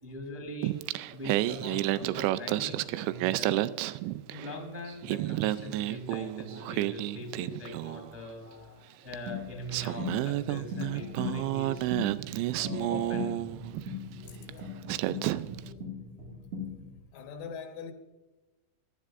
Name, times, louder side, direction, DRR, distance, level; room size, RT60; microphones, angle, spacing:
voice 1, 0.0-0.7 1.1-3.7 4.3-11.9 12.5-13.5 14.1-15.8, left 1 dB, 5° right, 1.9 m, -42 dB
Singing, 0.6-4.6 4.9-8.1 9.1-9.2 9.7-13.9 14.5-14.6 14.9-15.7, right 16 dB, 90° right, 2.5 m, -31 dB
sound 1, 9.3-17.0, left 4 dB, 50° right, 1.7 m, -39 dB
voice 2, 17.1-17.9, left 6 dB, 90° left, 4.0 m, -41 dB
17.0 x 11.5 x 2.5 m
omnidirectional pair, 5.5 m